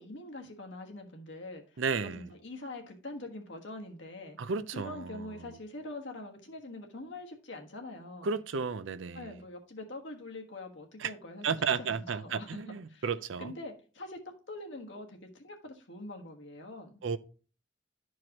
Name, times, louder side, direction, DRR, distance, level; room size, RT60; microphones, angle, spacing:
voice 1, 0.0-8.3 9.1-11.5 11.8-11.9 12.2-12.6 12.9-13.1 13.4-14.2 14.5-16.9, left 2 dB, 70° left, 1.3 m, -44 dB
voice 2, 1.8-2.2 4.4-5.2 8.2-9.3 11.0-11.1 11.4-13.5 17.0-17.2, right 5 dB, 80° right, 0.5 m, -33 dB
12.0 x 4.7 x 2.9 m
head